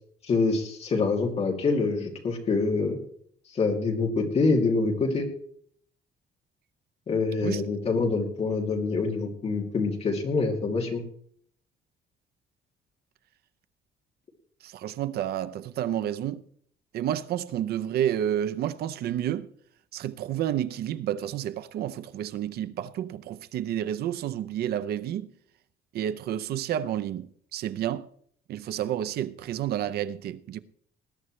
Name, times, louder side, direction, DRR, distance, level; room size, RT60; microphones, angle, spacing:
voice 1, 0.2-3.0 3.5-5.3 7.1-11.0, left 4 dB, 40° left, 2.6 m, -26 dB
voice 2, 14.6-16.4 16.9-19.5 19.9-25.3 25.9-27.3 27.5-28.1 28.5-30.6, right 11 dB, 70° right, 0.7 m, -30 dB
20.5 x 11.0 x 3.2 m
cardioid pair, 160°, 17 cm